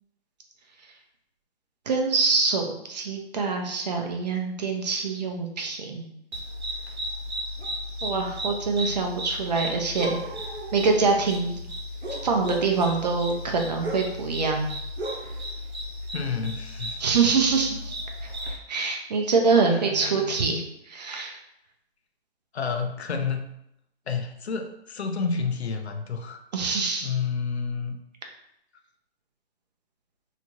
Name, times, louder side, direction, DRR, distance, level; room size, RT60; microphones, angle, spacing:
voice 1, 1.9-6.1 8.0-10.2 10.7-11.6 12.2-14.7 17.0-17.9 18.4-20.6 20.9-21.4 26.5-27.1, right 4 dB, 40° right, 3 dB, 0.5 m, -25 dB
sound 1, 6.3-18.6, equal, 80° right, 0.9 m, -34 dB
voice 2, 16.1-17.0 19.7-20.6 22.5-23.5 24.1-26.4 27.0-28.0, left 5 dB, 85° left, 5 dB, 0.5 m, -30 dB
2.8 x 2.3 x 2.9 m, 0.78 s
figure-of-eight pair, 140°, 32 cm